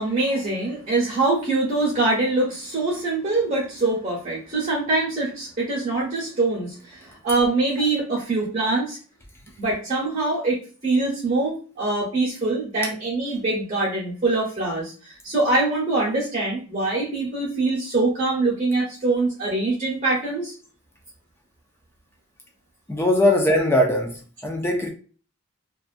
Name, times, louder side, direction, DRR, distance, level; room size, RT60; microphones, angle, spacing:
voice 1, 0.0-9.0 9.6-20.5, right 2 dB, 40° right, 0.9 m, -24 dB
voice 2, 22.9-24.9, left 1 dB, 10° left, 0.4 m, -20 dB
2.4 x 2.3 x 2.4 m
head